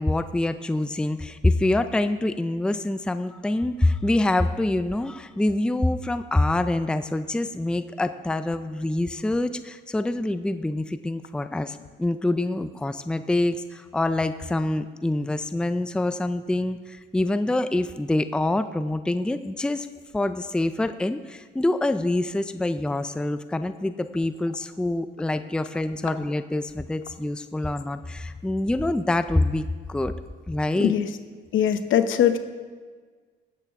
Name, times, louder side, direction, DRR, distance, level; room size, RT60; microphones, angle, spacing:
voice 1, 0.0-19.9 20.1-30.1 30.5-30.9, left 2 dB, 5° left, 11 dB, 0.4 m, -26 dB
voice 2, 30.7-31.1 31.5-32.4, left 9 dB, 75° left, 9 dB, 0.9 m, -21 dB
19.0 x 8.0 x 3.6 m, 1.5 s
cardioid pair, 90°, 20 cm